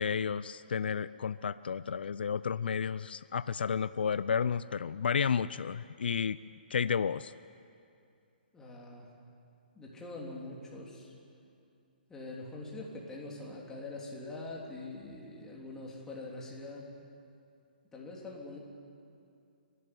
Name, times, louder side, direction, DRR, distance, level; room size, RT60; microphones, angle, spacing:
voice 1, 0.0-6.4 6.7-7.3, left 6 dB, 80° left, 16 dB, 0.5 m, -32 dB
voice 2, 8.5-9.1 9.8-11.1 12.1-16.9 17.9-18.6, left 2 dB, 10° left, -3 dB, 3.5 m, -44 dB
28.5 x 12.5 x 9.8 m, 2.5 s
hypercardioid pair, 150°, 5 cm